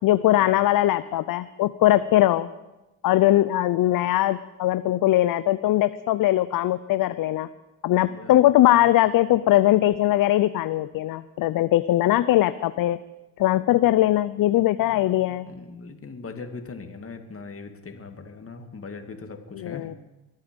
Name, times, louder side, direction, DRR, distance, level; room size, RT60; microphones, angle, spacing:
voice 1, 0.0-2.5 3.0-7.5 7.8-13.0 13.4-15.5 19.5-19.9, left 14 dB, 45° left, 14 dB, 0.6 m, -20 dB
voice 2, 14.8-19.9, left 4 dB, 25° left, 5 dB, 2.3 m, -40 dB
22.0 x 9.2 x 5.3 m, 1.0 s
supercardioid pair, 75°, 49 cm